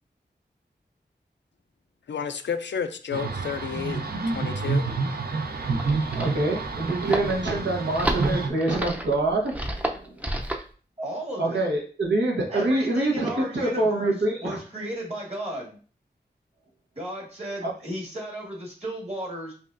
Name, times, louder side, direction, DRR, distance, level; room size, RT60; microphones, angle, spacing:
voice 1, 2.1-4.0 4.3-4.8, left 7 dB, 80° left, 8 dB, 0.4 m, -31 dB
sound 1, 3.1-8.5, right 4 dB, 60° right, 0.6 m, -29 dB
sound 2, 5.6-10.7, right 1 dB, 10° right, 0.6 m, -31 dB
voice 2, 5.8-10.1 11.4-14.6, right 2 dB, 85° right, -1 dB, 1.0 m, -26 dB
voice 3, 11.0-11.6 12.5-14.1 14.4-15.8 17.0-19.5, right 1 dB, 35° right, -2 dB, 1.7 m, -34 dB
5.2 x 2.4 x 2.5 m, 0.40 s
wide cardioid pair, 50°, 18 cm